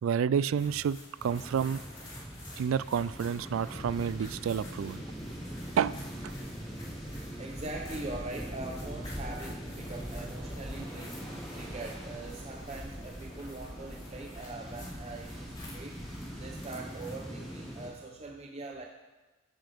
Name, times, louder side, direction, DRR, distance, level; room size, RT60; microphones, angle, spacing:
voice 1, 0.0-1.8 2.6-5.0 5.8-6.3, right 7 dB, 90° right, 19 dB, 0.3 m, -30 dB
sound 1, 0.5-17.3, left 1 dB, 25° left, 3.4 m, -52 dB
sound 2, 1.2-17.9, equal, ahead, 4.4 m, -42 dB
voice 2, 7.4-11.2 11.5-16.1 16.4-18.8, right 2 dB, 35° right, 1 dB, 0.8 m, -42 dB
14.0 x 9.2 x 3.6 m, 1.2 s
head